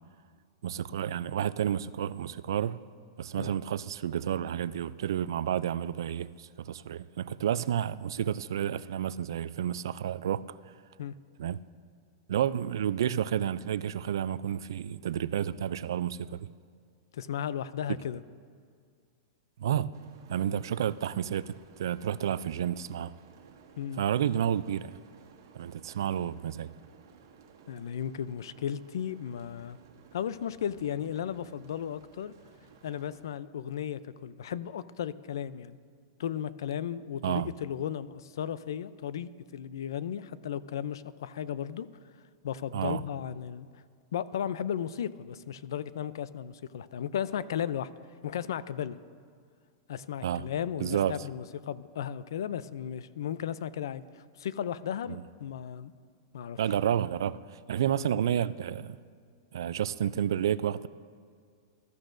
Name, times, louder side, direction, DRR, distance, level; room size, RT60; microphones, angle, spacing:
voice 1, 0.6-2.8 3.2-10.5 11.4-11.6 12.3-16.5 19.6-19.9 20.3-23.1 24.0-24.9 25.5-26.7 37.2-37.5 42.7-43.0 50.2-50.5 50.8-51.2 55.1-55.2 56.6-59.0 59.5-60.9, right 9 dB, 80° right, 0.3 m, -30 dB
voice 2, 17.1-18.2 23.8-24.0 27.7-29.8 30.1-32.3 32.8-35.8 36.2-41.9 42.4-43.7 44.1-47.9 48.2-49.0 49.9-55.9 56.3-56.6, left 9 dB, 80° left, 0.5 m, -35 dB
sound 1, 19.9-33.2, right 6 dB, 65° right, 1.6 m, -57 dB
20.5 x 13.0 x 2.6 m
supercardioid pair, 175°, 2 cm